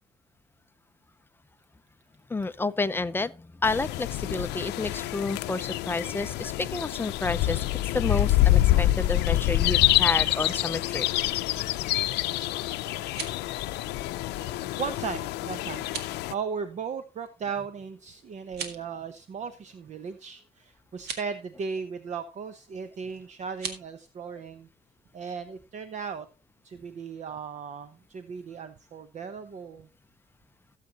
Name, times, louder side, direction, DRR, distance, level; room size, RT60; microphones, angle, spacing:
voice 1, 2.3-7.6 7.9-11.1, left 3 dB, 15° left, 0.5 m, -30 dB
sound 1, 3.6-16.3, left 16 dB, 85° left, 0.6 m, -26 dB
sound 2, 12.9-13.5 15.8-16.2 18.4-18.9 20.9-21.3 23.5-23.8, right 6 dB, 70° right, 1.9 m, -38 dB
voice 2, 13.0-24.7 25.1-26.3 26.6-29.9, right 6 dB, 45° right, 0.9 m, -37 dB
16.5 x 7.5 x 2.9 m
cardioid pair, 110°, 17 cm